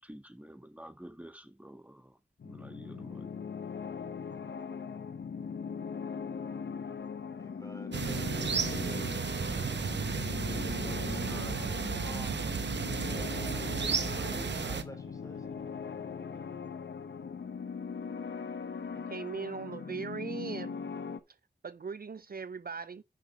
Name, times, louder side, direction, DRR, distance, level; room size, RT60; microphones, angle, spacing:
voice 1, 0.0-2.2 2.4-3.3, equal, 10° right, 1.6 m, -49 dB
sound 1, 2.4-21.2, left 5 dB, 85° left, 0.8 m, -40 dB
voice 2, 7.4-9.1 10.1-11.6 12.0-12.6 13.0-15.4, equal, 20° left, 3.0 m, -49 dB
sound 2, 7.9-14.8, right 5 dB, 80° right, 0.9 m, -33 dB
Fire, 13.9-16.7 17.5-17.6, right 2 dB, 30° right, 1.7 m, -55 dB
voice 3, 18.9-20.8 21.6-23.0, right 5 dB, 55° right, 0.5 m, -39 dB
6.4 x 5.8 x 6.1 m
cardioid pair, 40°, 18 cm